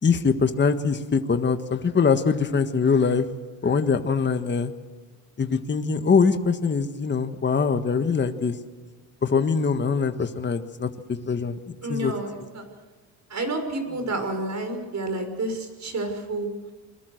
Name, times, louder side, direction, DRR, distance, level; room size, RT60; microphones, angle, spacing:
voice 1, 0.0-3.2 3.6-4.7 5.4-8.5 9.2-11.6 11.9-12.1, left 5 dB, 25° left, 8 dB, 1.6 m, -23 dB
voice 2, 11.8-12.6 13.3-16.7, right 2 dB, 40° right, 7 dB, 6.0 m, -30 dB
27.5 x 21.5 x 6.6 m, 1.3 s
cardioid pair, 105°, 43 cm